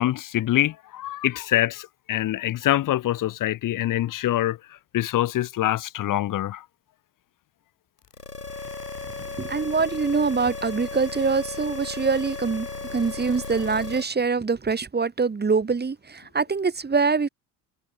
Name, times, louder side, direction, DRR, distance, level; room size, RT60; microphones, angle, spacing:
voice 1, 0.0-4.6 4.9-6.6, left 14 dB, 45° left, 2.5 m, -25 dB
sound 1, 8.0-14.0, left 3 dB, 90° left, 2.6 m, -35 dB
voice 2, 9.4-17.3, right 4 dB, 20° right, 5.5 m, -24 dB
figure-of-eight pair, 65°, 46 cm